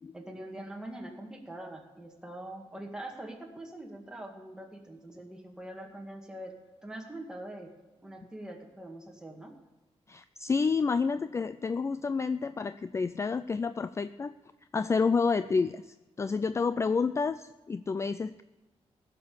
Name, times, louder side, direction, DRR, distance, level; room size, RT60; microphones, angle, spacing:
voice 1, 0.1-6.5 6.8-7.7 8.0-9.5, right 1 dB, 5° right, 1 dB, 2.0 m, -43 dB
voice 2, 10.1-14.3 14.7-18.4, left 5 dB, 25° left, 13 dB, 0.3 m, -29 dB
16.0 x 6.8 x 7.0 m, 1.1 s
wide cardioid pair, 125°, 11 cm